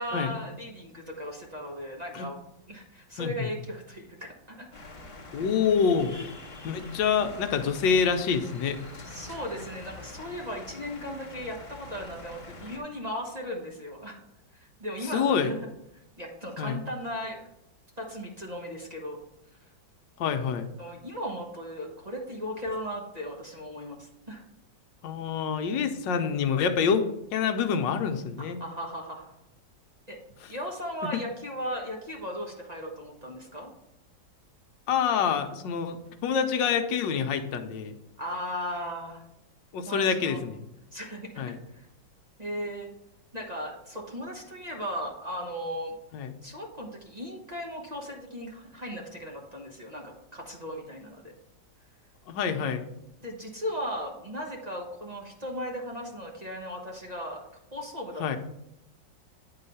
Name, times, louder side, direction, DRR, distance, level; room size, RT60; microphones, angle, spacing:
voice 1, 0.0-2.4 2.7-4.7 9.0-14.2 14.5-15.6 16.2-17.5 18.0-19.2 20.8-24.4 28.6-29.4 30.1-30.2 30.5-33.7 38.2-39.2 39.9-40.4 40.9-41.4 41.7-41.9 42.4-42.9 43.3-45.9 46.4-51.3 53.2-57.4 57.7-58.4, equal, 25° right, -1 dB, 1.0 m, -37 dB
voice 2, 3.2-3.5 5.3-6.1 6.6-8.8 15.0-15.5 16.6-16.8 20.2-20.7 25.0-28.6 30.4-30.5 31.1-31.2 34.9-38.0 39.7-40.6 41.4-41.6 46.1-46.3 52.3-52.8 58.2-58.4, left 6 dB, 75° left, 7 dB, 1.4 m, -27 dB
sound 1, 4.7-12.8, left 2 dB, 20° left, 1.1 m, -45 dB
9.9 x 3.9 x 5.5 m, 0.82 s
omnidirectional pair, 2.1 m